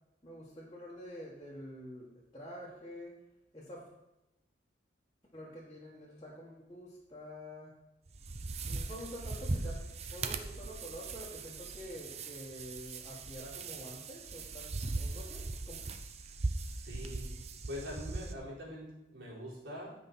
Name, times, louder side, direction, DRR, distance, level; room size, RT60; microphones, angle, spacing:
voice 1, 0.2-3.2 3.5-3.8 5.3-7.8 8.6-9.8 10.1-15.8, equal, 20° left, -8 dB, 1.6 m, -47 dB
sound 1, 8.1-18.3, right 3 dB, 35° right, 0.6 m, -39 dB
voice 2, 16.6-17.3 17.7-19.9, left 1 dB, 80° right, -6 dB, 4.1 m, -44 dB
15.0 x 5.4 x 4.2 m, 0.97 s
head